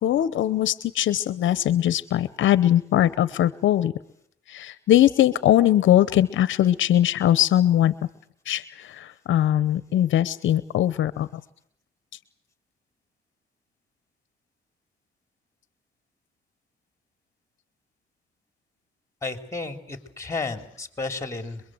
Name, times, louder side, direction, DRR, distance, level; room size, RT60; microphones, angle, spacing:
voice 1, 0.0-3.9 4.5-7.9 8.5-11.3, left 12 dB, 75° left, 16 dB, 1.0 m, -21 dB
voice 2, 19.2-21.6, left 3 dB, 15° left, 8 dB, 3.6 m, -32 dB
26.5 x 22.5 x 7.9 m, 0.66 s
cardioid pair, 90°, 20 cm